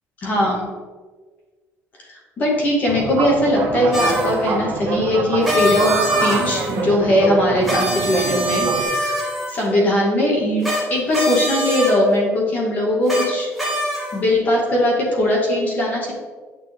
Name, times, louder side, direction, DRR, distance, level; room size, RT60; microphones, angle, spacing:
voice 1, 0.2-0.7 2.1-10.6 10.9-13.5 14.1-16.1, left 1 dB, 30° left, -1 dB, 2.0 m, -20 dB
sound 1, 2.9-8.8, right 4 dB, 45° right, 1.2 m, -25 dB
sound 2, 3.9-4.4 5.4-6.9 7.6-9.7 10.6-10.8 11.1-11.9 13.1-13.3 13.6-14.2, equal, ahead, 2.0 m, -23 dB
9.4 x 5.9 x 3.6 m, 1.4 s
cardioid pair, 170°, 5 cm